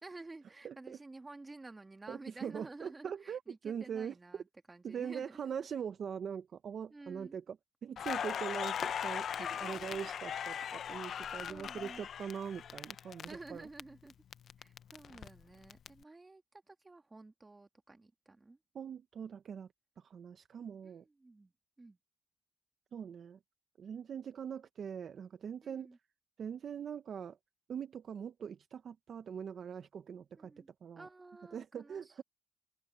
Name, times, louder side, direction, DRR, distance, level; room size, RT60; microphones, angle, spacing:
voice 1, 0.0-5.5 6.9-7.4 9.4-10.1 11.5-12.1 13.3-14.1 14.6-18.6 20.8-21.5 21.8-22.0 25.6-26.0 30.4-30.7 31.0-32.2, right 2 dB, 25° right, 2.1 m, -52 dB
voice 2, 0.6-1.0 2.1-4.2 4.8-9.3 9.6-13.7 18.7-19.7 20.0-21.0 22.9-23.4 23.8-26.0 26.4-27.4 27.7-30.5 30.8-31.1 31.5-32.2, right 7 dB, 60° right, 1.0 m, -42 dB
Crackle, 8.0-13.8 14.1-15.9, left 8 dB, 65° left, 0.7 m, -39 dB
cardioid pair, 70°, 0 cm